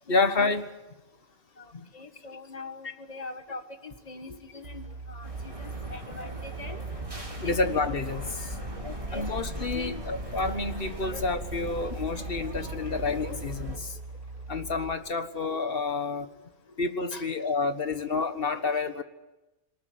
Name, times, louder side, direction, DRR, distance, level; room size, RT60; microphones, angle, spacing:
voice 1, 0.1-0.7 1.7-1.9 7.4-8.6 9.1-14.0 14.5-16.3 16.8-19.0, left 3 dB, 50° left, 9 dB, 1.7 m, -29 dB
voice 2, 1.6-6.8 7.4-7.6 8.8-9.3 9.6-10.0 11.0-11.1 13.9-14.0 17.1-17.3 18.5-18.8, left 3 dB, 35° left, 7 dB, 1.7 m, -42 dB
sound 1, 4.6-14.9, right 3 dB, 65° right, 2.1 m, -40 dB
sound 2, 5.2-13.8, equal, 25° right, 3.9 m, -39 dB
22.0 x 20.0 x 9.3 m, 1.0 s
omnidirectional pair, 1.2 m